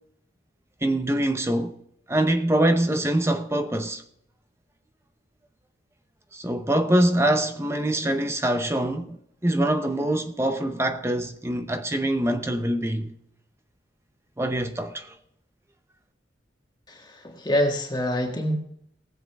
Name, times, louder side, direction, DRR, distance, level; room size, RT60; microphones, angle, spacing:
voice 1, 0.8-1.8 2.1-4.0 6.3-13.1 14.4-15.1, right 1 dB, 15° right, 0.7 m, -24 dB
voice 2, 16.9-18.6, equal, 25° left, 1.6 m, -26 dB
19.0 x 7.6 x 3.4 m
head